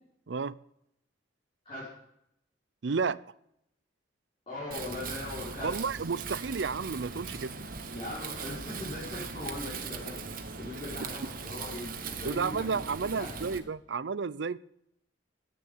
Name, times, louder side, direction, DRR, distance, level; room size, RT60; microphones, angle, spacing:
voice 1, 0.3-0.6 2.8-3.2 5.6-7.5 12.2-14.6, right 5 dB, 70° right, 19 dB, 0.5 m, -32 dB
voice 2, 4.5-5.7 7.8-10.1 10.6-13.5, left 1 dB, 30° left, -9 dB, 5.8 m, -40 dB
Wind, 4.7-13.6, right 4 dB, 45° right, 1.3 m, -40 dB
11.0 x 8.7 x 9.9 m, 0.78 s
head